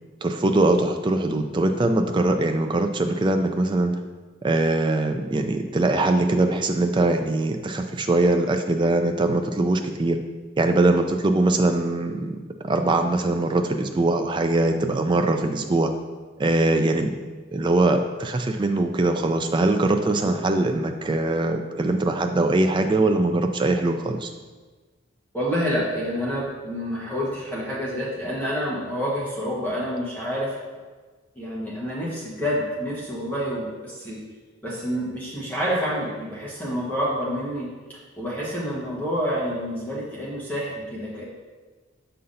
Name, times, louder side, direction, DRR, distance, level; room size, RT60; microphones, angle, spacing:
voice 1, 0.2-3.9 4.4-10.2 10.6-12.3 12.6-15.9 16.4-17.2 17.5-24.3, right 2 dB, 20° right, 5 dB, 0.3 m, -22 dB
voice 2, 25.3-30.5 31.4-34.2 34.6-37.7 38.2-41.2, equal, 10° left, -7 dB, 1.1 m, -28 dB
6.7 x 5.5 x 2.6 m, 1.3 s
head